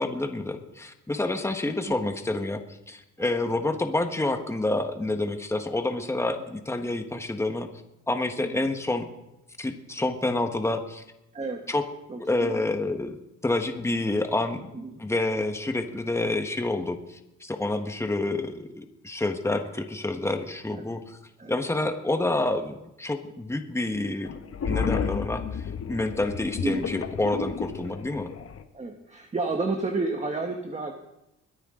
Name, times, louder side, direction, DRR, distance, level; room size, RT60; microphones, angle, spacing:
voice 1, 0.0-2.6 2.9-7.7 8.1-9.1 9.6-11.0 11.7-11.8 12.2-13.2 13.4-14.7 15.0-21.2 21.5-24.3 24.6-28.3, left 2 dB, 10° left, 5 dB, 1.4 m, -28 dB
voice 2, 1.6-2.0 8.4-8.6 11.3-11.6 12.1-12.6 14.7-15.0 20.7-20.9 21.4-21.5 26.6-26.9 28.7-30.9, right 3 dB, 25° right, 3 dB, 1.4 m, -31 dB
sound 1, 24.2-28.6, left 6 dB, 50° left, 1.2 m, -32 dB
22.0 x 10.0 x 3.8 m, 0.90 s
cardioid pair, 90°, 30 cm